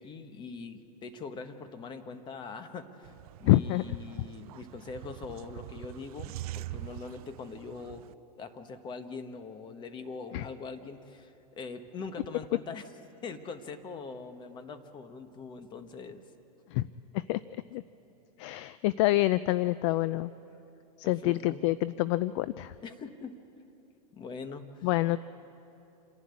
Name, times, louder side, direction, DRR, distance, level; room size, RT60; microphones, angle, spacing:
voice 1, 0.0-3.1 3.4-8.1 8.4-12.9 13.2-16.2 21.0-21.6 22.8-23.3 24.1-24.9, left 4 dB, 20° left, 9 dB, 1.2 m, -42 dB
sound 1, 3.0-8.1, right 16 dB, 65° right, 0.5 m, -44 dB
voice 2, 3.4-3.8 10.3-10.5 16.7-16.9 17.1-17.4 17.7-17.8 18.4-20.3 21.0-22.7 24.8-25.2, left 17 dB, 45° left, 17 dB, 0.4 m, -27 dB
27.0 x 11.5 x 9.7 m, 2.9 s
supercardioid pair, 135°, 20 cm